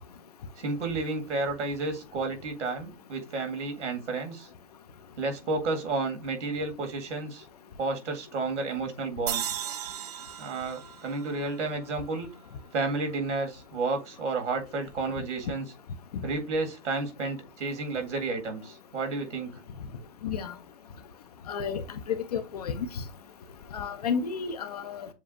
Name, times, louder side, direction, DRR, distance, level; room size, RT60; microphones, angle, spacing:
voice 1, 0.6-4.5 5.2-7.5 7.8-9.5 10.4-12.3 12.7-15.6 16.2-19.5, right 3 dB, 75° right, 1.8 m, -31 dB
sound 1, 9.3-12.5, right 10 dB, 35° right, 0.4 m, -37 dB
voice 2, 21.5-21.8 22.1-22.9 23.7-25.1, left 6 dB, 35° left, 0.4 m, -31 dB
7.1 x 2.4 x 2.5 m
hypercardioid pair, 140°, 36 cm